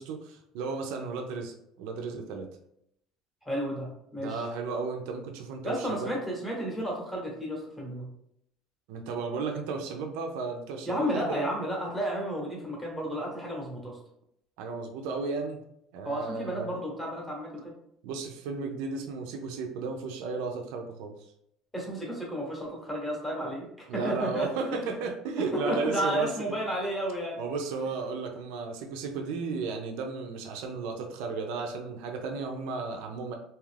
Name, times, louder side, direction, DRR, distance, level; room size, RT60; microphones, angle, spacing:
voice 1, 0.0-2.5 4.2-6.1 8.9-11.5 14.6-15.6 15.9-16.7 18.0-21.1 23.9-26.3 27.4-33.3, right 4 dB, 75° right, 3 dB, 0.4 m, -34 dB
voice 2, 3.4-4.4 5.6-8.1 10.9-14.0 16.0-17.7 21.7-24.8 25.5-27.4, equal, 5° left, -2 dB, 0.7 m, -32 dB
2.7 x 2.4 x 3.2 m, 0.75 s
cardioid pair, 170°, 0 cm